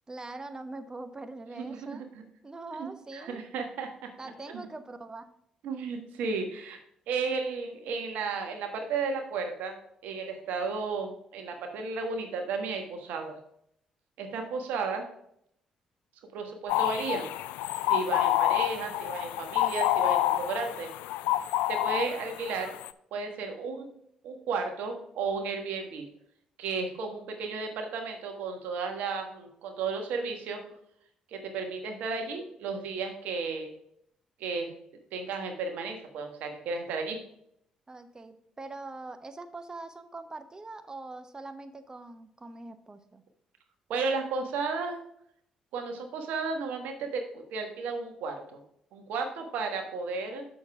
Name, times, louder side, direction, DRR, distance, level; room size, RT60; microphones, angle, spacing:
voice 1, 0.1-2.1 2.4-3.4 4.2-5.3 37.9-43.2, right 2 dB, 25° right, 9 dB, 1.1 m, -43 dB
voice 2, 1.6-2.2 3.1-3.9 5.6-6.8 7.1-9.8 10.0-13.4 14.2-15.0 16.3-17.3 17.9-20.9 21.7-22.7 23.1-23.9 24.2-26.1 26.6-30.6 31.3-33.7 34.4-34.7 35.1-37.2 43.9-45.0 45.7-48.6 48.9-50.5, right 4 dB, 75° right, 4 dB, 1.4 m, -33 dB
sound 1, 16.7-22.9, left 14 dB, 80° left, 0.3 m, -28 dB
7.0 x 6.3 x 4.8 m, 0.71 s
hypercardioid pair, 50°, 3 cm